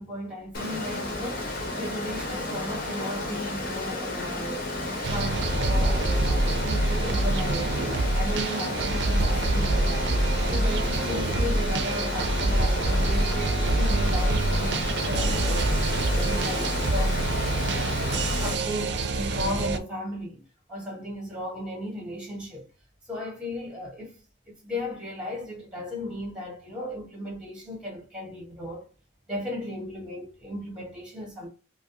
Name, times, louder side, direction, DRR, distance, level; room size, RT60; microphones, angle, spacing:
voice 1, 0.0-4.7 5.1-7.7 8.1-10.1 10.5-17.5 17.8-20.4 20.7-22.7 23.1-24.2 24.6-28.9 29.3-31.5, left 1 dB, 5° right, 1.7 m, -36 dB
Water, 0.5-18.5, left 2 dB, 50° left, 1.1 m, -32 dB
sound 1, 5.0-19.8, right 2 dB, 60° right, 0.5 m, -25 dB
4.9 x 2.1 x 2.7 m
head